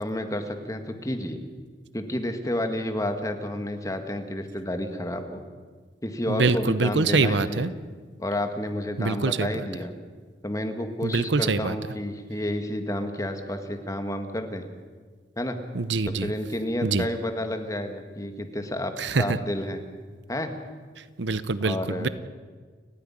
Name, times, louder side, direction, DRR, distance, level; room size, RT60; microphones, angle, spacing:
voice 1, 0.0-1.4 1.9-5.4 6.0-7.7 8.2-9.9 10.4-14.7 15.4-15.6 16.1-19.8 20.3-20.6 21.6-22.1, left 1 dB, 20° left, 6 dB, 1.8 m, -30 dB
voice 2, 6.3-7.7 9.0-9.5 11.0-11.7 15.7-16.3 16.8-17.0 19.0-19.4 21.2-22.1, right 3 dB, 80° right, 14 dB, 0.9 m, -24 dB
29.5 x 10.0 x 10.0 m, 1.5 s
head